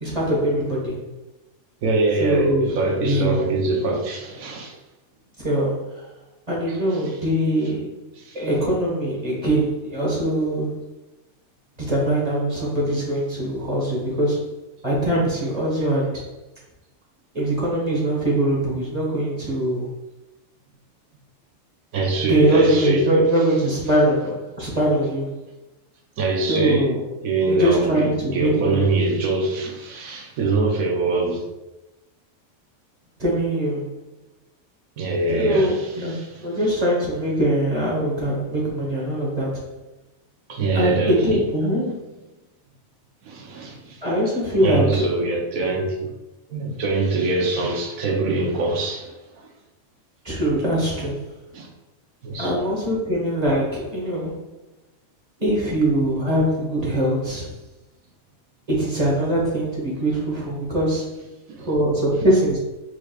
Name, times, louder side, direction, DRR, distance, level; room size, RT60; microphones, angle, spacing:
voice 1, 0.0-1.0 2.2-2.8 3.0-3.4 5.4-6.0 6.5-8.0 8.3-10.9 11.8-14.5 14.8-16.3 17.3-19.9 22.2-25.3 26.5-27.0 27.5-28.9 33.2-33.9 35.3-39.6 40.7-42.0 44.0-45.1 50.2-51.2 52.4-54.4 55.4-57.5 58.7-61.2 61.7-62.6, right 1 dB, 30° right, 1.4 m, -22 dB
voice 2, 1.8-4.7 6.7-6.8 7.0-7.1 8.2-8.4 21.9-23.1 26.2-26.9 27.2-31.5 35.0-36.5 40.5-41.4 43.2-44.0 44.6-46.1 46.5-49.5 51.5-51.7 52.2-52.6 61.5-61.7, right 3 dB, 75° right, 1.2 m, -24 dB
4.8 x 4.5 x 2.3 m
omnidirectional pair, 1.5 m